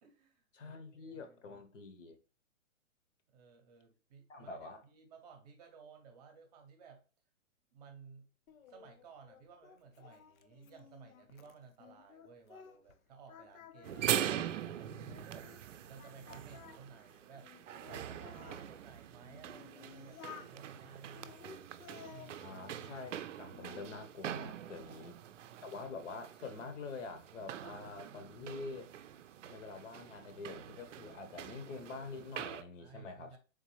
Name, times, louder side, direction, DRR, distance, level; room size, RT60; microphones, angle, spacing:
voice 1, 0.0-1.6 3.3-4.6 4.8-7.0 7.7-8.3 8.7-17.5 17.8-21.5 22.1-22.6 24.5-24.9 32.8-33.4, right 5 dB, 30° right, 0.7 m, -57 dB
voice 2, 0.5-2.2 4.3-4.8 22.4-25.2 25.6-28.9 29.5-33.4, left 3 dB, 65° left, 1.0 m, -46 dB
Singing, 8.5-13.0 13.3-15.6 16.0-18.6 19.2-20.5 21.1-23.1 23.5-24.1, left 8 dB, 90° left, 0.6 m, -55 dB
sound 1, 13.8-32.6, right 10 dB, 65° right, 0.5 m, -43 dB
3.7 x 3.3 x 3.1 m
hypercardioid pair, 145°, 40 cm